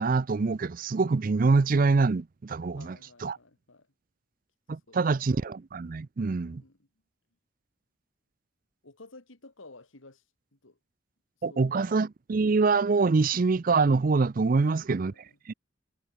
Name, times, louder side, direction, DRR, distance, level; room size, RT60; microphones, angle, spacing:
voice 1, 0.0-3.0 3.2-3.4 4.7-6.6 11.4-15.1 15.5-15.6, right 4 dB, 45° right, 0.4 m, -25 dB
voice 2, 2.7-3.9 4.7-5.1 6.6-6.9 8.8-10.2 10.5-10.8 11.5-11.9 14.5-15.4, left 2 dB, 80° left, 2.5 m, -53 dB
head